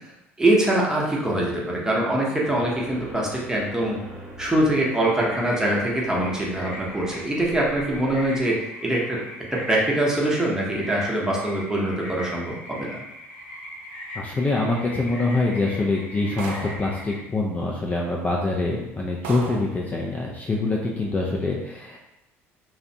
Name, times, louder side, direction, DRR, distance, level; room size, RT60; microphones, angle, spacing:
voice 1, 0.4-4.0 4.4-9.2 9.5-13.0, right 1 dB, 10° right, -4 dB, 0.8 m, -23 dB
sound 1, 2.4-8.5, right 1 dB, 45° right, 0.9 m, -42 dB
sound 2, 5.2-17.2, equal, 75° left, 0.7 m, -40 dB
voice 2, 14.2-22.0, left 2 dB, 25° left, -3 dB, 0.4 m, -25 dB
sound 3, 16.4-17.0 18.0-18.1 18.6-18.7 19.2-19.8, right 4 dB, 75° right, 0.4 m, -34 dB
2.4 x 2.0 x 2.7 m, 0.88 s
hypercardioid pair, 65°, 7 cm